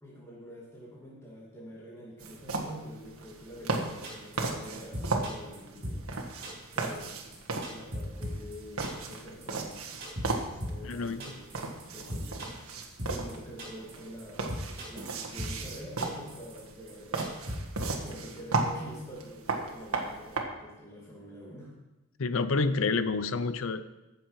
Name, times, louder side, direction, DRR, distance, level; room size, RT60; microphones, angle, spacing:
voice 1, 0.0-6.0 6.7-7.2 7.7-9.8 10.5-11.5 11.9-14.5 14.9-17.7 18.0-21.8, equal, 10° left, -6 dB, 2.3 m, -46 dB
sound 1, 2.2-20.4, right 3 dB, 80° right, 1.5 m, -36 dB
sound 2, 3.7-3.8 4.0-4.4 4.6-4.7 4.9-5.6 5.8-6.2 6.4-7.1 7.3-8.6 8.8-9.2 9.4-9.5 9.7-9.8 10.0-10.3 10.6-10.9 11.2-11.8 12.1-12.7 13.0-13.3 13.6-13.9 14.2-14.3 14.5-15.1 15.4-15.7 16.0-16.6 16.9-17.0 17.2-18.1, equal, 45° right, 3.8 m, -38 dB
voice 2, 10.8-11.2 22.2-23.8, left 4 dB, 70° left, 13 dB, 0.6 m, -28 dB
14.5 x 6.9 x 4.8 m, 1.0 s
head